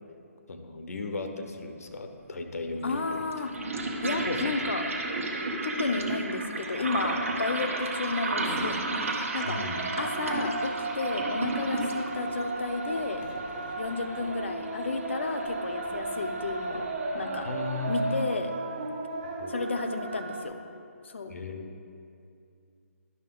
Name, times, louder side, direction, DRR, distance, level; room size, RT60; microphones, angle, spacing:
voice 1, 0.5-3.5 4.3-4.6 9.4-9.8 17.4-17.9 19.4-19.7 21.3-21.6, left 3 dB, 75° left, 6 dB, 1.0 m, -36 dB
sound 1, 1.9-2.0 2.8-18.2, right 2 dB, 65° right, 1.2 m, -34 dB
voice 2, 2.8-3.5 4.0-4.9 5.6-8.8 9.0-9.6 10.0-13.2 13.8-16.9 17.1-17.5 17.9-18.5 19.5-20.6 21.0-21.3, left 3 dB, 50° left, 7 dB, 0.6 m, -32 dB
Call to Prayer Old Dehli, 9.4-20.4, right 2 dB, 35° right, 0.7 m, -35 dB
11.0 x 6.2 x 3.8 m, 2.5 s
hypercardioid pair, 180°, 8 cm